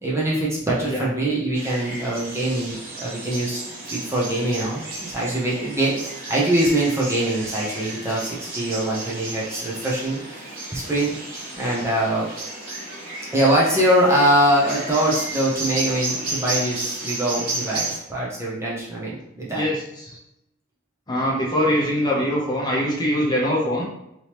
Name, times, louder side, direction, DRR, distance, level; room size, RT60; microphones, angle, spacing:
voice 1, 0.0-10.4 10.7-11.1 11.6-12.3 13.3-19.6, right 1 dB, 15° right, -6 dB, 0.6 m, -23 dB
sound 1, 1.5-18.0, right 2 dB, 45° right, 0.8 m, -33 dB
voice 2, 19.5-20.2 21.1-23.8, equal, 20° left, -4 dB, 0.7 m, -23 dB
3.4 x 2.9 x 2.9 m, 0.83 s
head